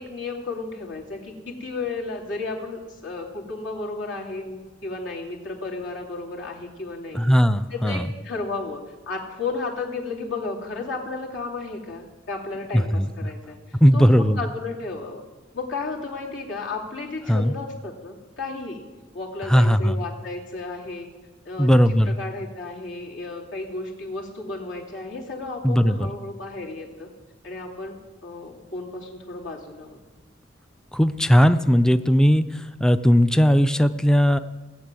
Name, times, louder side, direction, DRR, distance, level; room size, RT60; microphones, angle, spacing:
voice 1, 0.0-7.2 7.7-15.2 15.5-18.8 19.1-21.1 21.4-21.7 22.2-27.1 27.4-28.0 28.2-30.0, left 3 dB, 80° left, -2 dB, 2.8 m, -33 dB
voice 2, 7.1-8.1 12.7-13.3 13.8-14.4 17.3-17.5 19.5-20.0 21.6-22.2 25.6-26.1 30.9-34.4, equal, 5° left, 10 dB, 0.4 m, -18 dB
17.5 x 6.9 x 8.9 m, 1.3 s
head